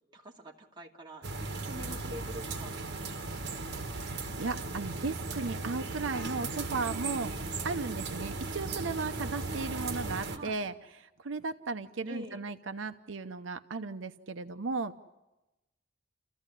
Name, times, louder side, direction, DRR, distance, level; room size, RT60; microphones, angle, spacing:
voice 1, 0.1-2.8 10.3-10.6 12.1-12.4, equal, 25° right, -1 dB, 2.6 m, -46 dB
sound 1, 1.2-10.4, right 3 dB, 60° right, 1.9 m, -37 dB
voice 2, 3.9-7.3 7.6-15.0, right 4 dB, 85° right, 9 dB, 0.8 m, -36 dB
29.0 x 15.0 x 9.8 m, 1.0 s
head